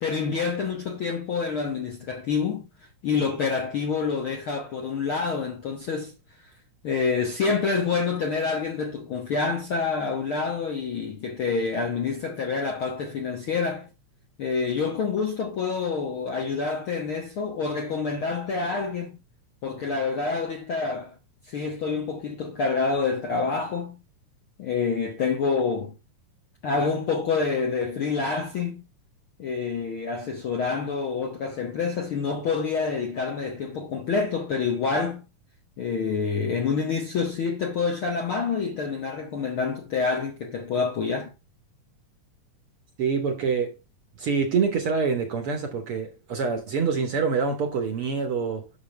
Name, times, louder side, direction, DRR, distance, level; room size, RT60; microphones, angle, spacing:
voice 1, 0.0-6.1 6.8-13.9 14.4-19.1 19.6-21.1 21.5-24.0 24.6-26.0 26.6-28.8 29.4-35.2 35.8-41.3, left 5 dB, 65° left, 1.4 m, -27 dB
voice 2, 43.0-43.8 44.2-48.7, right 5 dB, 55° right, 1.8 m, -26 dB
9.5 x 6.3 x 3.2 m
omnidirectional pair, 3.7 m